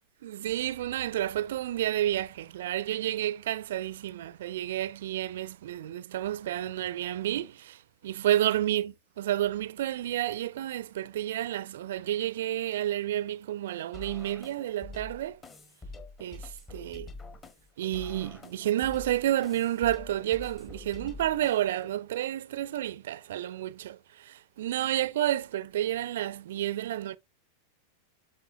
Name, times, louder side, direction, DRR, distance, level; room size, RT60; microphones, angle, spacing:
voice 1, 0.2-15.4 16.2-17.1 17.8-27.2, right 12 dB, 60° right, 0.4 m, -30 dB
sound 1, 13.9-21.9, left 3 dB, 20° left, 1.3 m, -46 dB
11.5 x 4.3 x 2.5 m
figure-of-eight pair, 90°, 0 cm